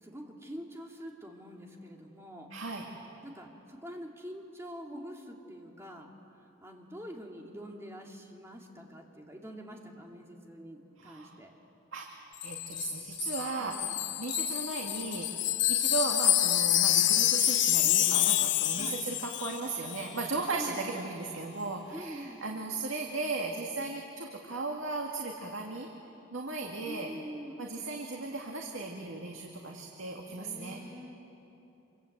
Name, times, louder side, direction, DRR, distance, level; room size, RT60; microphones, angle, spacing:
voice 1, 0.0-2.5 3.2-6.1 6.6-11.5 13.6-14.1 18.7-19.0 20.5-21.0 21.9-22.6 26.8-28.0 30.2-31.2, equal, 15° right, 0 dB, 2.7 m, -45 dB
voice 2, 2.5-2.8 11.0-11.4 11.9-12.1 12.4-13.9 14.2-15.4 15.7-25.9 26.3-27.1 27.6-30.8, right 3 dB, 85° right, 1 dB, 2.1 m, -36 dB
Wind chime, 12.4-19.6 19.9-20.1, left 13 dB, 65° left, 1.0 m, -27 dB
27.0 x 25.5 x 8.0 m, 2.9 s
head